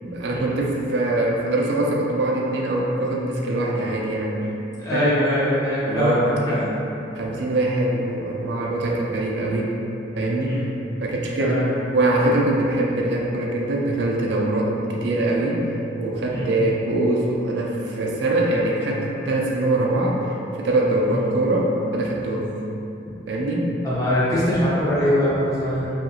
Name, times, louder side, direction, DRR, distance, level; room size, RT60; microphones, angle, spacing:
voice 1, 0.0-4.5 4.9-5.1 5.9-6.3 7.2-9.7 10.2-10.6 11.0-11.6 11.9-15.6 16.0-22.5 23.3-23.6, right 2 dB, 65° right, -2 dB, 0.3 m, -23 dB
voice 2, 4.8-6.2 6.5-6.7 10.4-10.7 11.4-11.7 16.3-16.5 21.1-21.3 23.0-23.1 23.8-25.9, left 1 dB, 20° left, -10 dB, 0.6 m, -22 dB
2.7 x 2.4 x 2.7 m, 2.8 s
head